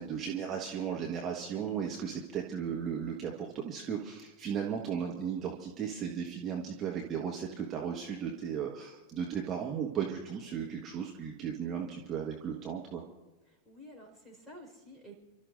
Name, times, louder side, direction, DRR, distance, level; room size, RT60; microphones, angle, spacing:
voice 1, 0.0-13.0, right 7 dB, 25° right, 0 dB, 1.5 m, -36 dB
voice 2, 13.5-15.1, equal, 5° left, -1 dB, 5.0 m, -51 dB
30.0 x 13.0 x 2.7 m, 1.2 s
figure-of-eight pair, 90°, 0 cm